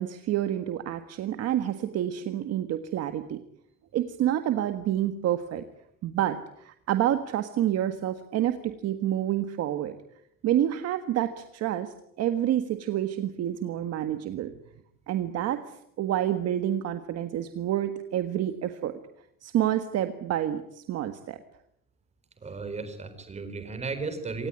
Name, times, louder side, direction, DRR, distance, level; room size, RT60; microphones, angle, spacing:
voice 1, 0.0-3.4 3.9-5.6 6.0-9.9 10.4-14.5 15.1-19.0 19.4-21.4, right 11 dB, 45° right, 9 dB, 1.6 m, -28 dB
voice 2, 22.4-24.5, right 4 dB, 20° right, 9 dB, 4.5 m, -35 dB
27.0 x 18.5 x 9.9 m, 0.76 s
cardioid pair, 165°, 34 cm